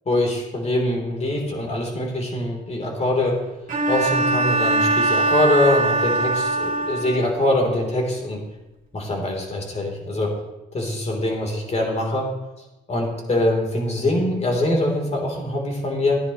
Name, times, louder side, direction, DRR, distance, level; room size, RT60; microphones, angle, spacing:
voice 1, 0.1-3.4 3.9-8.4 8.9-10.3 10.7-12.3 12.9-16.2, left 1 dB, 35° left, 0 dB, 3.4 m, -23 dB
Bowed string instrument, 3.7-7.4, right 2 dB, 45° right, 2.8 m, -21 dB
15.0 x 9.9 x 3.1 m, 1.0 s
cardioid pair, 90°, 20 cm